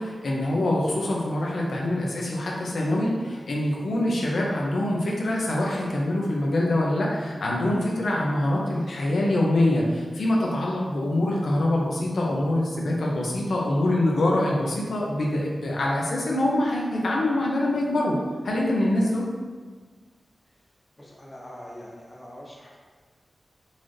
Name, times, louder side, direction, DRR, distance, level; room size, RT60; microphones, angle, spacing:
voice 1, 0.0-18.2 18.4-19.3, left 1 dB, 80° left, -3 dB, 0.5 m, -24 dB
voice 2, 21.0-22.8, equal, 20° left, -4 dB, 0.7 m, -43 dB
3.9 x 2.5 x 3.1 m, 1.5 s
wide cardioid pair, 95°, 0 cm